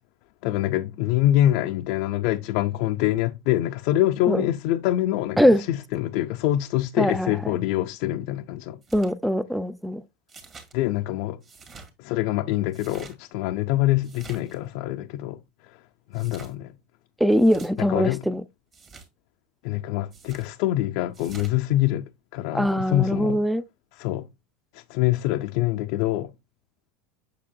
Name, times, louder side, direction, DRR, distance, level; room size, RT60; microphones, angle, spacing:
voice 1, 0.4-8.8 10.7-11.4 12.0-15.4 16.1-16.8 17.8-18.2 19.6-22.0 22.3-23.4 23.9-24.2 24.7-26.3, left 14 dB, 60° left, 0.5 m, -25 dB
voice 2, 7.0-7.3 8.9-10.0 17.2-18.4 22.5-23.6, equal, ahead, 0.4 m, -21 dB
sound 1, 8.8-9.1 10.3-10.7 11.4-11.9 12.7-13.1 14.0-14.6 16.1-16.5 17.3-17.7 18.7-19.1 20.1-20.5 21.1-21.5, right 4 dB, 25° right, 2.0 m, -46 dB
7.4 x 6.8 x 2.3 m
supercardioid pair, 145°, 0 cm